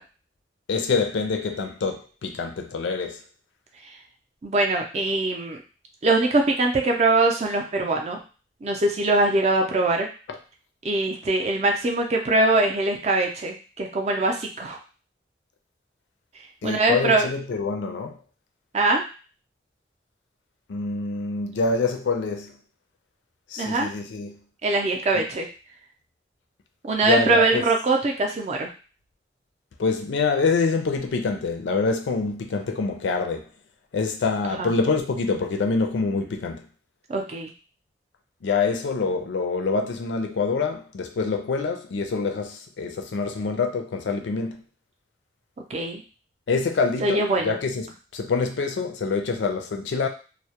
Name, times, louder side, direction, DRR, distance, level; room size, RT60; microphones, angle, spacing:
voice 1, 0.7-3.2 16.6-18.2 20.7-22.5 23.5-24.4 27.0-27.6 29.8-33.5 33.9-36.6 38.4-44.6 46.5-50.1, left 4 dB, 85° left, 0.4 m, -26 dB
voice 2, 4.4-5.6 6.0-8.2 8.6-10.1 10.8-14.8 16.6-17.3 18.7-19.0 23.6-23.9 24.6-25.5 26.8-28.7 34.5-34.7 37.1-37.5 45.7-46.0 47.0-47.6, right 2 dB, 35° right, 0.4 m, -22 dB
2.2 x 2.0 x 2.8 m
head